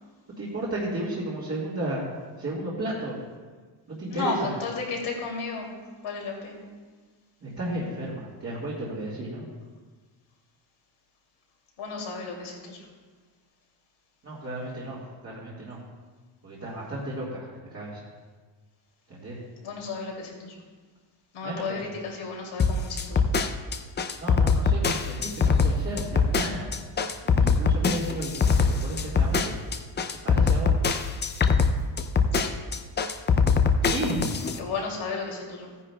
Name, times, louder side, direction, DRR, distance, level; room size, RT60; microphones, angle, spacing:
voice 1, 0.4-2.0 2.4-3.2 3.9-4.5 7.4-9.5 14.2-15.8 16.4-18.0 19.1-19.4 21.4-21.8 24.2-26.7 27.2-29.5 30.2-30.7 33.8-34.2, right 1 dB, 30° right, -6 dB, 1.6 m, -33 dB
voice 2, 4.1-5.8 6.0-6.6 11.8-12.9 19.6-20.6 21.3-23.3 32.3-32.5 34.6-35.7, left 4 dB, 85° left, -1 dB, 2.6 m, -33 dB
sound 1, 22.6-34.6, left 5 dB, 25° left, 0.3 m, -22 dB
16.0 x 9.9 x 2.2 m, 1.4 s
cardioid pair, 165°, 47 cm